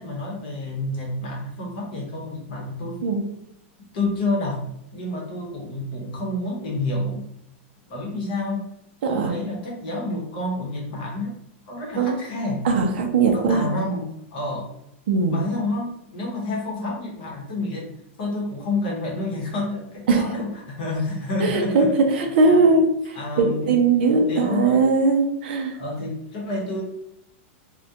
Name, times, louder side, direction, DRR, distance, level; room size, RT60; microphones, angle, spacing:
voice 1, 0.0-3.0 3.9-4.6 4.9-7.2 7.9-8.6 9.1-11.3 11.7-12.7 13.3-14.7 15.3-17.9 18.2-22.0 22.4-22.6 23.1-23.8 24.1-24.8 25.7-26.8, left 2 dB, 45° left, -2 dB, 0.8 m, -29 dB
voice 2, 12.6-13.7 15.1-15.4 20.1-20.2 21.4-22.8 23.1-25.8, right 4 dB, 50° right, 3 dB, 0.4 m, -20 dB
2.3 x 2.1 x 2.7 m, 0.81 s
supercardioid pair, 180°, 7 cm